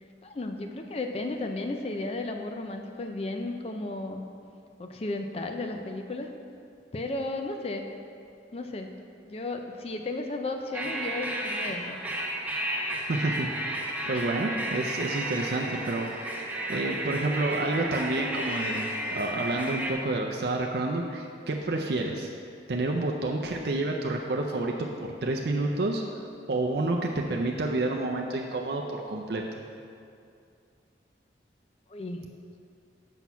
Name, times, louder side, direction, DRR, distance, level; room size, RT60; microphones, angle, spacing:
voice 1, 0.2-4.2 4.8-6.3 6.9-7.9 8.5-8.9 9.3-12.0 31.9-32.2, left 2 dB, 35° left, 5 dB, 0.4 m, -34 dB
sound 1, 10.7-19.9, right 1 dB, 10° right, 0.7 m, -33 dB
voice 2, 13.1-16.1 16.7-22.3 22.7-26.0 26.5-29.6, right 2 dB, 60° right, 0 dB, 0.5 m, -29 dB
6.1 x 5.8 x 5.6 m, 2.4 s
head